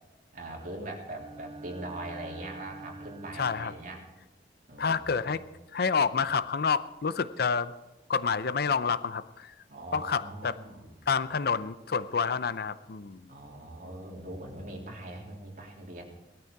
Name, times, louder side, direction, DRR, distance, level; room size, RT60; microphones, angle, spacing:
voice 1, 0.3-4.1 4.7-5.0 5.3-5.5 9.7-10.9 13.3-16.0, right 1 dB, 50° right, 0 dB, 3.3 m, -41 dB
Bowed string instrument, 1.0-4.2, right 2 dB, 30° right, 0.5 m, -47 dB
voice 2, 3.4-3.7 4.8-5.4 5.7-7.7 8.1-9.5 9.9-10.6 11.1-13.3, left 5 dB, 60° left, 14 dB, 0.6 m, -28 dB
18.0 x 13.0 x 4.7 m, 1.1 s
head